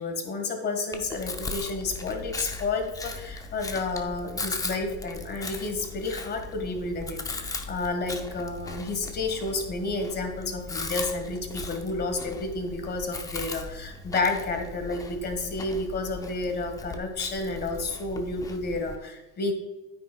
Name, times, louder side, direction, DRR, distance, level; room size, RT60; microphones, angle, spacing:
voice 1, 0.0-19.5, left 3 dB, 25° left, 5 dB, 1.7 m, -31 dB
Chewing mastication, 0.9-19.0, left 3 dB, 10° left, 0.6 m, -38 dB
9.6 x 9.2 x 2.3 m, 1.1 s
supercardioid pair, 115°, 37 cm